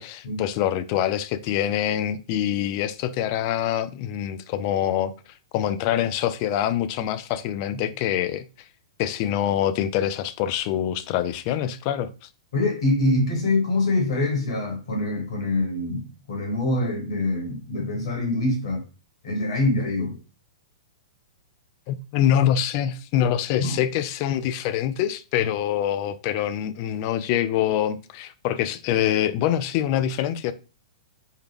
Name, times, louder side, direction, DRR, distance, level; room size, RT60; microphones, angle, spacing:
voice 1, 0.0-5.1 5.5-8.4 9.0-12.3 21.9-30.5, left 10 dB, 45° left, 0.3 m, -25 dB
voice 2, 12.5-18.8 19.2-20.2 23.6-23.8 25.4-25.5, left 2 dB, 70° left, 1.6 m, -25 dB
3.6 x 2.2 x 3.5 m
hypercardioid pair, 120°, 3 cm